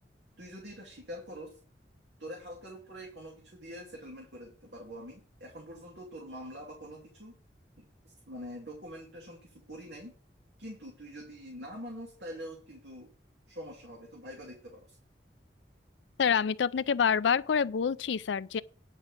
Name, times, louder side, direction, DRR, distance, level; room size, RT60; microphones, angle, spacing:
voice 1, 0.4-1.6 2.2-7.4 7.8-7.9 8.3-10.2 10.6-13.1 13.5-15.0, equal, 70° right, 2.5 m, -45 dB
voice 2, 16.2-18.6, left 6 dB, 85° left, 0.4 m, -27 dB
10.0 x 4.9 x 7.6 m
head